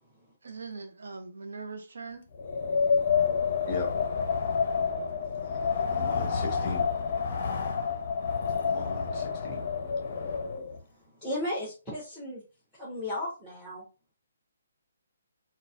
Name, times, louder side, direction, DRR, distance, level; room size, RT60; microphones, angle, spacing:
voice 1, 0.4-2.2, right 4 dB, 65° right, 0.5 m, -41 dB
Wind, 2.3-10.8, left 6 dB, 40° left, 0.6 m, -29 dB
voice 2, 6.0-6.9 8.7-9.6, left 3 dB, 20° left, 0.9 m, -36 dB
voice 3, 11.2-12.4 12.8-13.8, left 1 dB, 5° right, 1.2 m, -35 dB
3.9 x 2.2 x 2.4 m
figure-of-eight pair, 135°, 0 cm